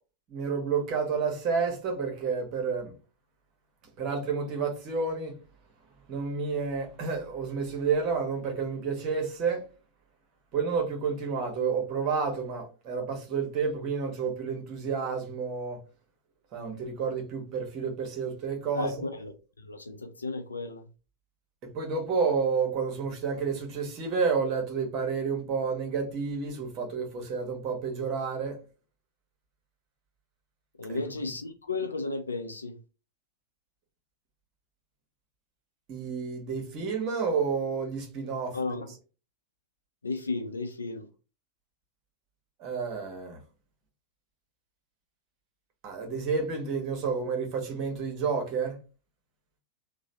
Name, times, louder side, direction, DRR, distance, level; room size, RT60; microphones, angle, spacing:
voice 1, 0.3-2.9 4.0-5.4 6.1-9.7 10.5-15.8 16.5-19.0 21.6-28.6 30.9-31.0 35.9-38.8 42.6-43.4 45.8-48.8, right 5 dB, 40° right, 1.1 m, -30 dB
voice 2, 18.7-19.3 19.6-20.9 30.8-32.8 38.5-38.8 40.0-41.1, left 3 dB, 75° left, 0.6 m, -34 dB
3.1 x 2.2 x 4.0 m
figure-of-eight pair, 90°, 0 cm